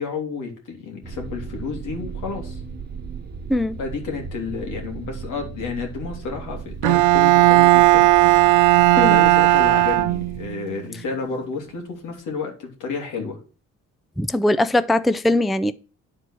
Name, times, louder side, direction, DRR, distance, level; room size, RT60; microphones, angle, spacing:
voice 1, 0.0-2.6 3.8-8.1 8.3-13.4, left 5 dB, 85° left, 3.1 m, -31 dB
sound 1, 1.0-10.5, right 5 dB, 30° right, 1.2 m, -36 dB
Bowed string instrument, 6.8-10.6, right 18 dB, 90° right, 0.5 m, -15 dB
voice 2, 14.2-15.7, left 1 dB, ahead, 0.4 m, -20 dB
10.0 x 4.6 x 6.3 m
cardioid pair, 90°, 30 cm